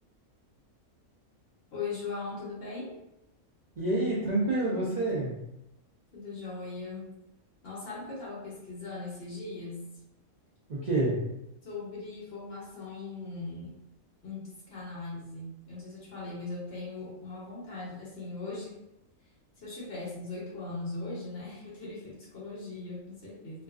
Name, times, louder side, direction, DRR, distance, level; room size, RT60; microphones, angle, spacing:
voice 1, 1.7-3.0 6.1-7.1 7.6-9.8 11.6-13.7 14.2-18.8 19.6-23.6, left 3 dB, 55° left, -6 dB, 0.9 m, -39 dB
voice 2, 3.8-5.4 10.7-11.2, right 2 dB, 60° right, -7 dB, 0.4 m, -28 dB
2.5 x 2.3 x 2.3 m, 0.88 s
omnidirectional pair, 1.4 m